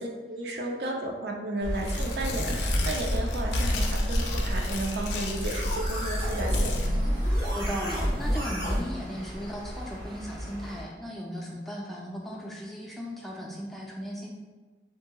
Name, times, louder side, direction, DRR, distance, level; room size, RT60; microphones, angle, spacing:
voice 1, 0.0-6.8, right 2 dB, 70° right, 1 dB, 0.4 m, -33 dB
sound 1, 1.6-10.8, equal, 90° right, 0.9 m, -32 dB
Tearing, 1.7-6.9, left 2 dB, 85° left, 0.4 m, -34 dB
sound 2, 3.9-8.8, equal, 35° right, 0.9 m, -30 dB
voice 2, 7.1-14.3, equal, ahead, -3 dB, 0.3 m, -37 dB
2.8 x 2.7 x 2.2 m, 1.3 s
head